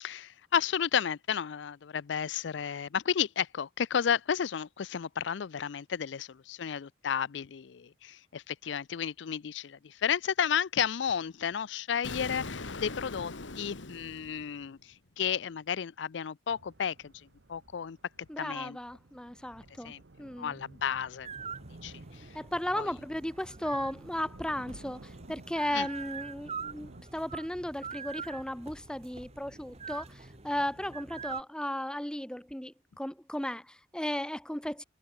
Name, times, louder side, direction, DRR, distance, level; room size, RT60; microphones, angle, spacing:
voice 1, 0.0-14.8 15.2-17.1 17.5-18.0 18.4-18.8 19.8-20.0 20.4-21.3 21.8-21.9 22.7-22.9 25.7-25.9, left 8 dB, 70° left, 0.5 m, -32 dB
Explosion, 12.0-14.9, left 3 dB, 90° left, 1.7 m, -41 dB
sound 1, 16.5-27.0, right 2 dB, 70° right, 1.1 m, -54 dB
voice 2, 18.3-19.9 20.2-20.6 22.3-34.8, left 1 dB, 5° left, 0.9 m, -35 dB
sound 2, 21.2-31.4, right 5 dB, 35° right, 2.3 m, -44 dB
head